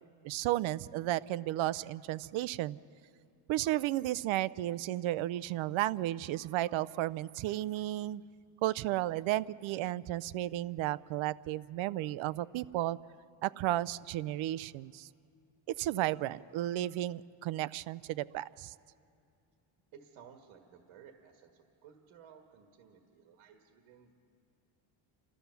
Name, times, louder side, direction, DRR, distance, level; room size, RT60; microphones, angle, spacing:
voice 1, 0.2-2.8 3.5-8.2 8.6-13.0 13.4-15.1 15.7-18.7, right 15 dB, 70° right, 18 dB, 0.5 m, -33 dB
voice 2, 19.9-24.1, right 7 dB, 85° right, 4 dB, 1.7 m, -57 dB
29.0 x 13.5 x 6.9 m, 2.4 s
cardioid pair, 145°, 49 cm